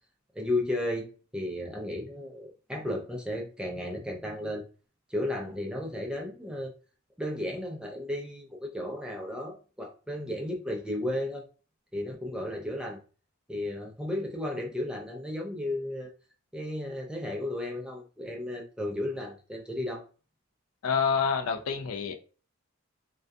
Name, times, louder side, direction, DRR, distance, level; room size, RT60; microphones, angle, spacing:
voice 1, 0.3-1.1 1.3-4.6 5.1-6.7 7.2-11.5 11.9-13.0 13.5-16.1 16.5-20.0, left 1 dB, 5° right, 0 dB, 0.3 m, -34 dB
voice 2, 20.8-22.2, left 6 dB, 80° left, 7 dB, 0.4 m, -27 dB
2.3 x 2.2 x 2.5 m, 0.37 s
head